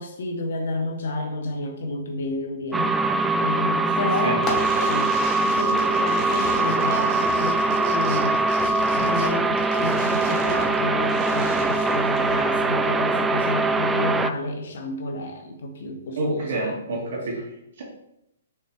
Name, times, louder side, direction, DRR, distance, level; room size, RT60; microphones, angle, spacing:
voice 1, 0.0-2.9 3.4-4.5 4.8-8.4 8.9-17.0, left 2 dB, 65° left, 4 dB, 0.8 m, -30 dB
sound 1, 2.7-14.3, right 3 dB, 10° right, 0.3 m, -22 dB
sound 2, 3.9-4.5 4.8-10.7, right 4 dB, 40° right, 1.4 m, -43 dB
Fireworks, 4.4-12.7, left 2 dB, 25° left, 1.3 m, -36 dB
voice 2, 16.2-17.8, right 2 dB, 60° right, -3 dB, 2.1 m, -28 dB
6.3 x 4.4 x 3.3 m, 0.81 s
hypercardioid pair, 135°, 0 cm